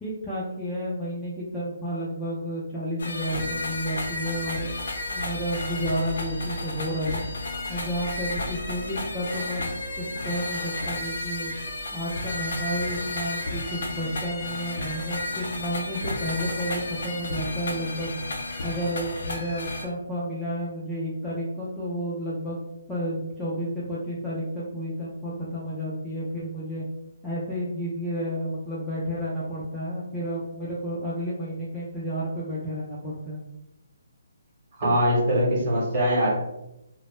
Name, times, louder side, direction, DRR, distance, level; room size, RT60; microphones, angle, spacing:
voice 1, 0.0-4.7 5.1-7.3 7.7-9.7 10.0-11.5 11.9-18.2 18.6-22.6 22.9-26.8 27.2-33.4, equal, 5° left, -9 dB, 0.3 m, -31 dB
sound 1, 3.0-19.9, left 2 dB, 70° left, 0.5 m, -32 dB
voice 2, 34.8-36.3, equal, 25° right, -6 dB, 0.9 m, -22 dB
2.0 x 2.0 x 3.0 m, 0.88 s
hypercardioid pair, 170°, 0 cm